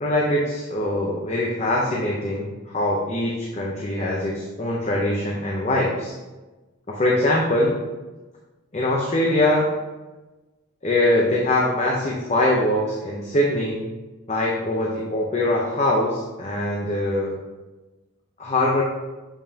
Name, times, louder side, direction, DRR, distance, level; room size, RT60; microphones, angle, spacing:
voice 1, 0.0-6.1 6.9-7.8 8.7-9.7 10.8-13.9 14.3-17.3 18.4-18.8, left 1 dB, 30° left, -2 dB, 0.7 m, -22 dB
7.2 x 5.5 x 2.8 m, 1.2 s
head